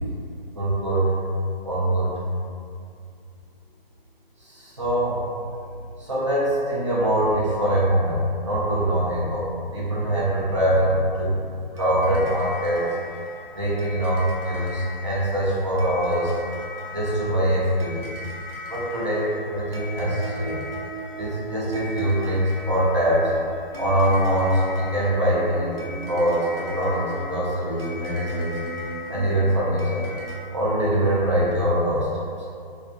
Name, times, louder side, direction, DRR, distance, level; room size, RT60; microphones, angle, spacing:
voice 1, 0.5-1.1 1.6-2.2 4.4-5.2 6.0-11.3 11.7-12.9 13.5-16.3 16.9-18.1 18.7-20.6 21.2-23.3 23.8-28.6 29.1-30.0 30.5-32.3, right 1 dB, 30° right, -8 dB, 0.4 m, -23 dB
sound 1, 11.8-30.4, equal, 75° right, 0.8 m, -37 dB
2.3 x 2.3 x 2.4 m, 2.3 s
hypercardioid pair, 160°, 30 cm